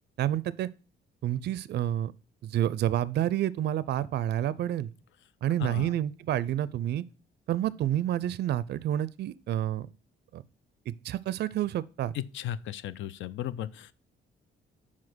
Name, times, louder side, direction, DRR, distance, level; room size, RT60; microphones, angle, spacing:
voice 1, 0.2-0.7 1.2-2.1 2.4-4.9 5.4-7.0 7.5-9.9 10.3-10.4 10.9-12.1, right 11 dB, 60° right, 0.4 m, -29 dB
voice 2, 5.6-5.9 12.1-13.9, left 11 dB, 75° left, 0.5 m, -35 dB
5.7 x 4.9 x 6.1 m
cardioid pair, 90°, 20 cm